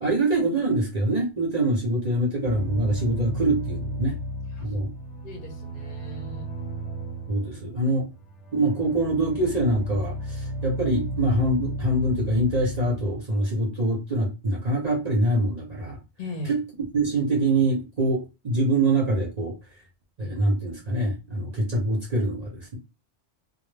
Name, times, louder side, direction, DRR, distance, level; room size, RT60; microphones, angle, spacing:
voice 1, 0.0-4.1 4.6-4.9 7.3-8.1 8.5-16.0 16.5-16.6 16.9-19.5 20.2-22.8, right 1 dB, 45° right, 0 dB, 0.6 m, -24 dB
sound 1, 2.4-13.2, equal, 75° left, 0.9 m, -34 dB
voice 2, 5.2-6.7 16.2-16.5, left 1 dB, 50° left, 3 dB, 0.7 m, -38 dB
2.1 x 2.1 x 3.2 m, 0.27 s
omnidirectional pair, 1.2 m